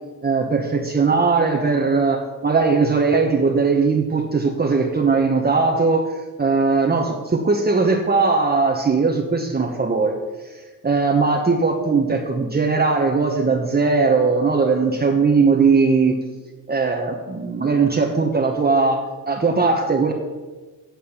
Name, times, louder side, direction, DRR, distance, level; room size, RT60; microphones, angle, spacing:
voice 1, 0.2-6.1 6.4-10.2 10.5-16.2 16.7-20.1, right 4 dB, 25° right, 2 dB, 1.1 m, -19 dB
9.1 x 8.8 x 5.8 m, 1.3 s
cardioid pair, 95°, 36 cm